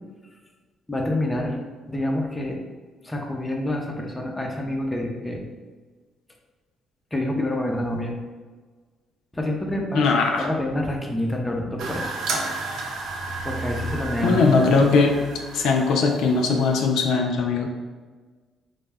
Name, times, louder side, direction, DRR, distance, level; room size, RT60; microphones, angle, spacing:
voice 1, 0.9-1.6 1.9-2.6 3.0-5.4 7.1-8.1 9.3-12.1 13.4-15.0, left 1 dB, 15° left, 0 dB, 0.4 m, -27 dB
voice 2, 9.9-10.5 14.2-15.2 15.5-17.7, left 4 dB, 80° left, 2 dB, 0.3 m, -20 dB
sound 1, 11.8-16.9, right 2 dB, 75° right, 0.4 m, -32 dB
2.2 x 2.0 x 3.3 m, 1.4 s
cardioid pair, 100°, 0 cm